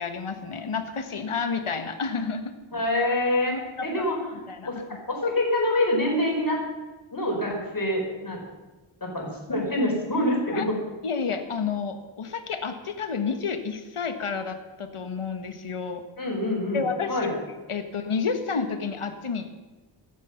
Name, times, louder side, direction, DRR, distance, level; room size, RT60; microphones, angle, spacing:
voice 1, 0.0-2.6 3.5-4.0 4.5-4.7 10.5-10.7 11.0-16.0 16.7-17.4 17.7-19.5, left 5 dB, 80° left, 8 dB, 1.5 m, -30 dB
voice 2, 2.7-3.5 3.8-6.6 7.1-8.4 9.0-10.8 16.2-16.8 17.1-17.3, left 1 dB, 40° left, 0 dB, 4.9 m, -26 dB
16.0 x 12.5 x 5.9 m, 1.1 s
wide cardioid pair, 85°, 50 cm